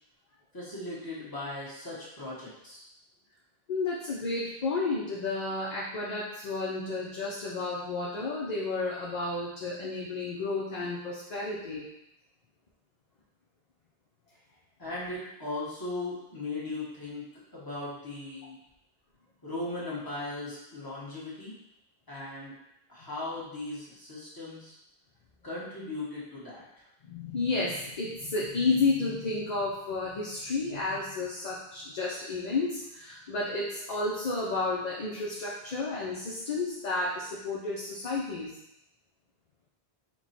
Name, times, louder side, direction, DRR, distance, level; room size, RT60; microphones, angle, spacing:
voice 1, 0.5-2.8 14.8-18.6 19.4-21.6 22.1-22.5 22.9-24.8 25.4-26.7, left 2 dB, 20° left, -8 dB, 1.3 m, -38 dB
voice 2, 3.7-11.8 23.0-23.1 27.0-38.5, left 3 dB, 50° left, -4 dB, 0.7 m, -31 dB
4.5 x 2.3 x 4.2 m, 0.84 s
omnidirectional pair, 1.0 m